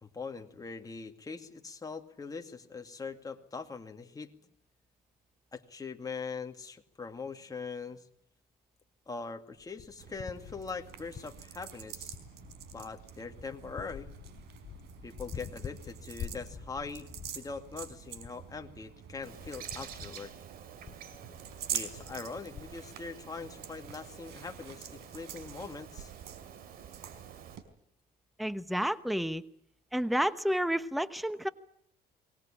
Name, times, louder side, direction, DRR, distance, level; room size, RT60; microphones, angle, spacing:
voice 1, 0.0-4.3 5.5-8.0 9.1-12.1 12.7-14.1 15.0-17.1 17.4-20.3 21.7-26.1, left 4 dB, 20° left, 4 dB, 2.4 m, -42 dB
sound 1, 9.5-11.7 12.1-22.8, left 8 dB, 50° left, 4.3 m, -47 dB
sound 2, 10.0-27.6, right 9 dB, 80° right, 4.2 m, -46 dB
Bird, 19.2-27.6, right 8 dB, 65° right, 2.9 m, -50 dB
voice 2, 28.4-29.4 29.9-31.5, equal, ahead, 13 dB, 1.0 m, -30 dB
23.0 x 20.0 x 8.9 m, 0.74 s
cardioid pair, 110°, 17 cm